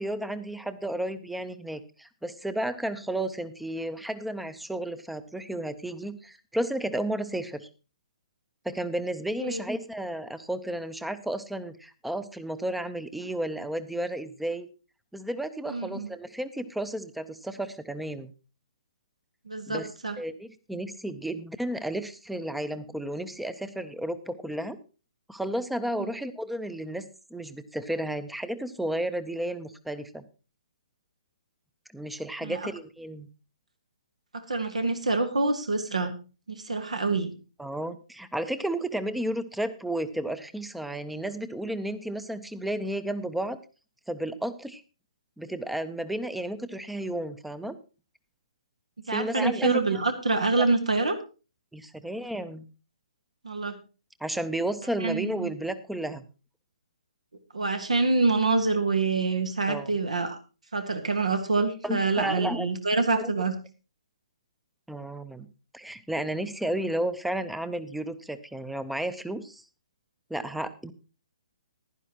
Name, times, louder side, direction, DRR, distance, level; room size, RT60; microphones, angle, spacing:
voice 1, 0.0-7.7 8.6-14.7 15.1-18.3 19.7-19.9 20.2-24.8 25.3-27.0 27.3-30.2 31.9-33.3 37.6-43.6 44.1-44.8 45.4-47.8 49.1-49.8 50.6-50.7 51.7-52.7 54.2-56.2 59.7-59.9 61.8-62.7 63.2-63.3 64.9-65.5 65.7-69.6 70.3-70.9, right 1 dB, ahead, 13 dB, 0.7 m, -32 dB
voice 2, 15.7-16.1 19.5-20.2 32.4-32.7 34.3-36.2 36.5-37.3 49.1-51.2 53.4-53.8 55.0-55.5 57.5-60.4 60.7-63.6, right 3 dB, 75° right, 7 dB, 1.5 m, -26 dB
16.0 x 11.0 x 3.0 m, 0.33 s
figure-of-eight pair, 130°, 4 cm